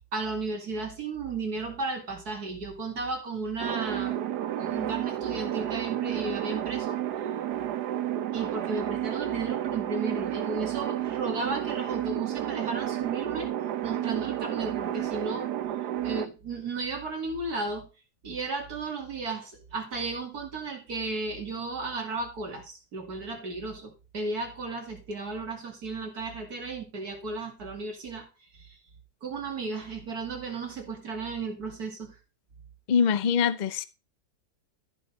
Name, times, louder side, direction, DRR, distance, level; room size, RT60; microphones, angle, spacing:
voice 1, 0.1-4.2 4.6-7.0 8.3-13.5 13.8-15.5 16.0-17.9 18.2-28.3 29.2-32.1, right 3 dB, 70° right, 3.1 m, -34 dB
sound 1, 3.6-16.3, right 11 dB, 85° right, 1.3 m, -31 dB
voice 2, 32.9-33.8, left 7 dB, 55° left, 0.4 m, -23 dB
14.0 x 6.1 x 4.1 m
omnidirectional pair, 1.7 m